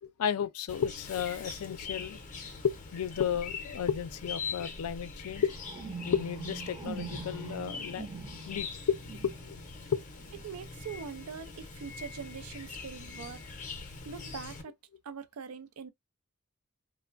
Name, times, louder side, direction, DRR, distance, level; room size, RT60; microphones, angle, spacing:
voice 1, 0.0-2.2 2.6-5.5 6.0-8.1 8.5-9.6 9.9-10.0, left 8 dB, 85° left, 0.4 m, -33 dB
Chirp tweet, 0.7-14.6, left 4 dB, 35° left, 0.6 m, -43 dB
sound 1, 2.9-3.1 3.7-4.1 4.9-14.4, right 3 dB, 20° right, 0.5 m, -46 dB
voice 2, 10.4-13.4 14.0-14.7 15.0-15.9, right 6 dB, 85° right, 0.4 m, -43 dB
3.1 x 2.0 x 2.4 m
head